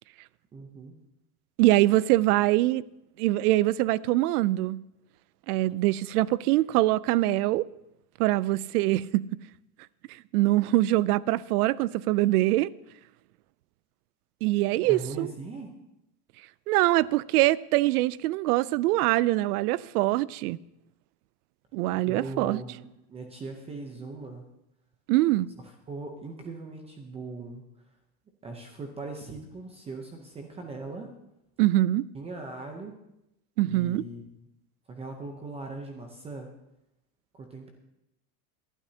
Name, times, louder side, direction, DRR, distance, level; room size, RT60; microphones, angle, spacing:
voice 1, 0.5-0.9 14.8-15.7 22.1-24.4 25.9-27.6 28.4-31.1 32.1-33.0 33.6-34.2 34.9-36.5 37.3-37.7, right 3 dB, 15° right, 0.7 m, -39 dB
voice 2, 1.6-2.8 3.2-4.8 5.5-7.7 8.2-9.3 10.3-12.7 14.4-15.3 16.7-20.6 21.7-22.6 25.1-25.5 31.6-32.1 33.6-34.0, right 17 dB, 90° right, 0.5 m, -23 dB
21.0 x 12.0 x 2.8 m
supercardioid pair, 170°, 44 cm